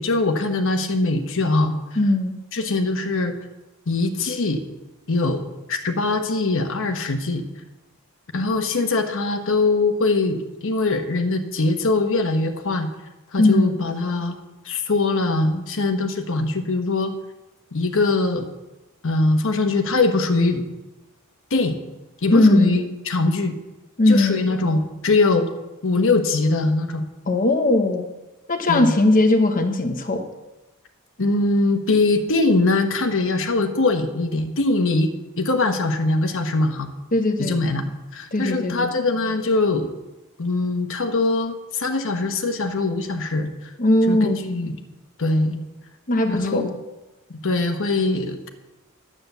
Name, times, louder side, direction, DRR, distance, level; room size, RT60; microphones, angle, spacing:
voice 1, 0.0-2.0 2.5-3.3 3.9-4.6 5.1-5.4 5.7-7.5 8.3-12.9 13.3-14.4 14.6-17.1 17.7-18.5 19.0-20.6 21.5-21.8 22.2-23.5 24.1-25.5 25.8-27.1 28.7-28.9 31.2-35.1 35.4-36.9 37.4-39.9 40.4-43.5 44.1-44.8 45.2-45.6 46.3-46.7 47.3-48.5, left 3 dB, 60° left, 6 dB, 1.1 m, -22 dB
voice 2, 2.0-2.4 13.4-13.8 22.3-22.8 24.0-24.5 27.3-28.1 28.5-30.2 37.1-37.6 38.3-38.9 43.8-44.4 46.1-46.7, left 2 dB, 40° left, 4 dB, 1.0 m, -19 dB
10.5 x 8.7 x 6.8 m, 1.0 s
head